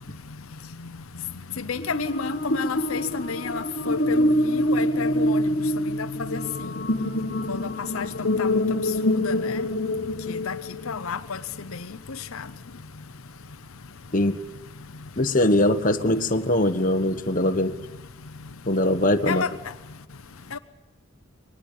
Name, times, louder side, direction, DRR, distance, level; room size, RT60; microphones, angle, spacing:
voice 1, 0.0-15.2 17.0-20.6, left 5 dB, 80° left, 10 dB, 0.8 m, -34 dB
sound 1, 1.8-11.1, left 1 dB, 55° left, 1.4 m, -26 dB
voice 2, 15.2-17.8 18.7-19.4, left 1 dB, 40° left, 6 dB, 1.5 m, -21 dB
23.0 x 19.5 x 8.5 m, 1.1 s
head